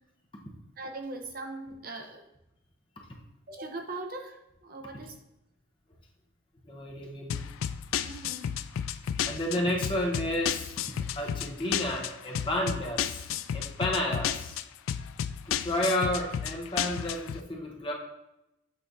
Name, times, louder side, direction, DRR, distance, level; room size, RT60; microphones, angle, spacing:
voice 1, 0.8-2.2 3.5-5.2 8.0-8.5, right 2 dB, 45° right, 4 dB, 0.6 m, -40 dB
voice 2, 6.6-7.4 9.3-10.7 11.1-13.3 13.5-14.6 15.4-17.9, left 1 dB, 25° left, -1 dB, 0.9 m, -31 dB
sound 1, 7.3-17.4, left 9 dB, 85° left, 0.3 m, -33 dB
8.3 x 4.3 x 2.6 m, 0.86 s
head